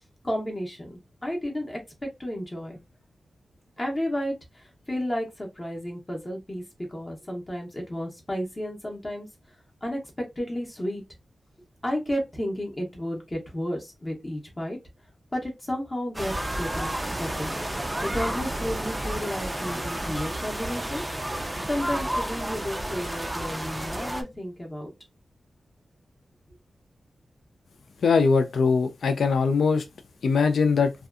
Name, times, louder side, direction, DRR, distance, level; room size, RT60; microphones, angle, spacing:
voice 1, 0.2-2.8 3.8-6.6 6.9-10.0 10.4-11.0 11.8-14.8 15.3-16.9 17.2-17.6 18.0-21.0 21.7-24.9, equal, 20° left, 0.6 m, -32 dB
sound 1, 16.1-24.2, right 1 dB, 10° right, 0.3 m, -31 dB
voice 2, 28.0-29.8 30.2-30.9, left 5 dB, 90° left, 0.3 m, -21 dB
2.6 x 2.2 x 2.3 m
wide cardioid pair, 170°, 0 cm